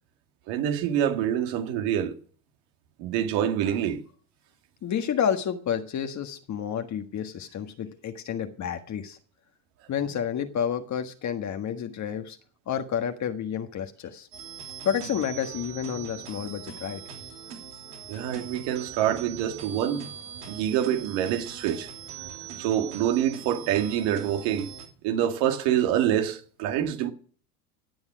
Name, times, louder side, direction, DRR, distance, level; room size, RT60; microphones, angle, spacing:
voice 1, 0.5-2.2 3.0-4.0 18.1-20.1 20.5-21.9 22.6-24.7 25.0-27.1, right 10 dB, 65° right, 2.2 m, -26 dB
voice 2, 4.8-9.2 9.9-12.4 12.7-14.3 14.8-17.0, left 8 dB, 40° left, 1.5 m, -30 dB
sound 1, 14.3-24.9, right 8 dB, 85° right, 3.2 m, -41 dB
17.0 x 7.2 x 6.2 m
hypercardioid pair, 85°, 44 cm